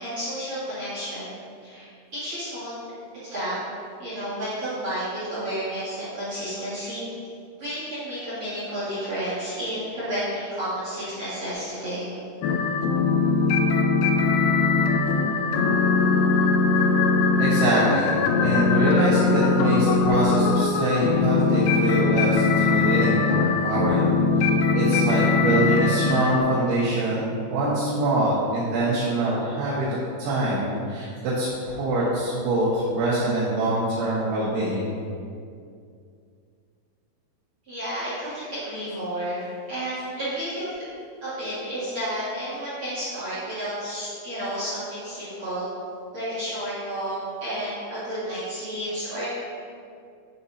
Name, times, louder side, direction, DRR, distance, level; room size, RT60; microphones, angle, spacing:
voice 1, 0.0-2.7 3.3-3.6 4.0-7.1 7.6-12.2 37.6-40.8 41.2-45.7 46.1-49.3, right 1 dB, 45° right, -12 dB, 1.8 m, -31 dB
sound 1, 12.4-26.4, left 4 dB, 85° left, 2.4 m, -21 dB
voice 2, 17.4-24.1 24.4-34.9, right 1 dB, 85° right, -10 dB, 3.8 m, -24 dB
10.5 x 4.2 x 4.0 m, 2.4 s
omnidirectional pair, 5.3 m